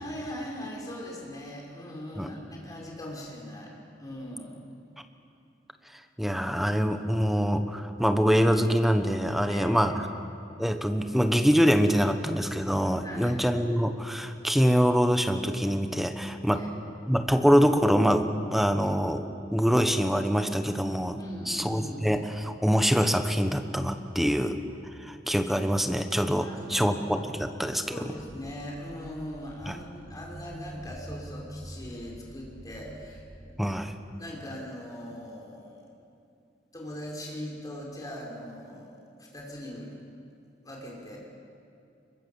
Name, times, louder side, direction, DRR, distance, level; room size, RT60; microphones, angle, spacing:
voice 1, 0.0-3.7 4.0-4.6 9.5-10.0 13.0-13.4 16.5-16.7 21.2-22.0 26.4-27.0 27.7-33.5 34.2-35.9 36.7-39.9 40.6-41.2, left 1 dB, 20° left, -2 dB, 5.4 m, -40 dB
voice 2, 6.2-9.9 10.6-16.6 17.1-19.2 19.5-21.2 21.5-24.6 25.1-28.1 29.7-29.8 33.6-33.9, equal, ahead, 7 dB, 1.2 m, -24 dB
sound 1, 28.2-33.2, right 1 dB, 20° right, 2.2 m, -45 dB
24.5 x 22.5 x 7.2 m, 2.6 s
head